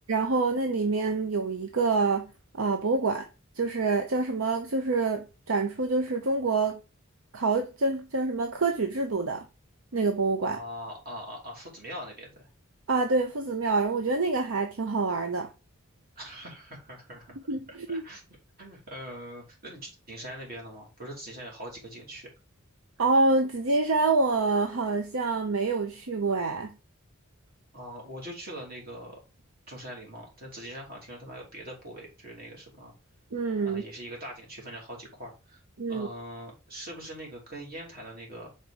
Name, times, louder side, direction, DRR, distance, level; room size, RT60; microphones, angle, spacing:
voice 1, 0.1-2.3 2.6-3.3 3.6-6.8 7.3-9.5 9.9-10.6 12.9-15.5 17.5-17.6 17.9-18.0 23.0-26.7 33.3-33.8 35.8-36.1, right 3 dB, 70° right, 0.7 m, -26 dB
voice 2, 10.4-12.5 16.2-18.2 18.6-22.3 27.7-29.2 29.7-32.9 33.6-35.6 35.9-38.5, equal, 45° right, 2.8 m, -42 dB
5.0 x 4.1 x 4.9 m
head